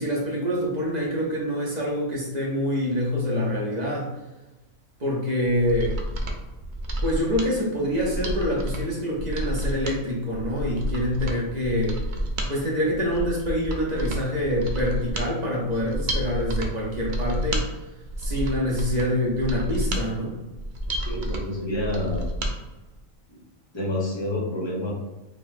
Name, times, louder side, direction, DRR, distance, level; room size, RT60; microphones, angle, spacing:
voice 1, 0.0-4.1 5.0-6.0 7.0-12.0 12.5-17.6 18.2-20.3, equal, 35° right, -4 dB, 0.9 m, -26 dB
Mechanisms, 5.5-22.5 22.9-23.0, right 1 dB, 60° right, 0.5 m, -30 dB
voice 2, 21.0-22.3 23.7-24.9, left 1 dB, 25° left, -4 dB, 0.9 m, -28 dB
4.0 x 3.0 x 2.6 m, 1.1 s
omnidirectional pair, 1.4 m